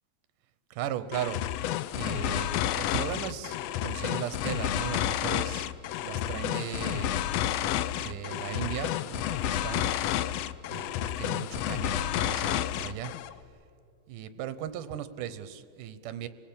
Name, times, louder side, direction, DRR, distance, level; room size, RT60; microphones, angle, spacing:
voice 1, 0.7-1.4 1.9-5.7 6.0-7.2 8.0-9.9 10.7-13.1 14.1-16.3, right 10 dB, 90° right, 13 dB, 2.5 m, -37 dB
sound 1, 1.1-13.3, left 12 dB, 80° left, 1.4 m, -30 dB
27.0 x 18.0 x 8.6 m, 2.7 s
omnidirectional pair, 3.6 m